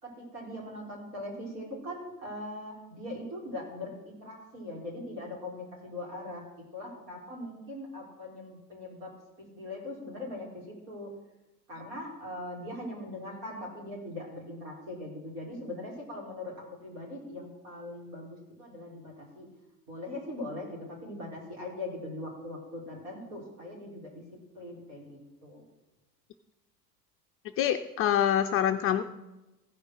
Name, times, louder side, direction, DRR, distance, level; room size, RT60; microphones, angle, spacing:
voice 1, 0.0-6.4 6.7-9.1 9.5-11.1 11.7-19.5 19.9-24.2 24.5-25.6, left 1 dB, 65° right, -3 dB, 4.8 m, -41 dB
voice 2, 27.6-29.0, left 10 dB, 30° left, 7 dB, 0.4 m, -25 dB
15.5 x 5.2 x 6.3 m, 1.0 s
hypercardioid pair, 80°, 49 cm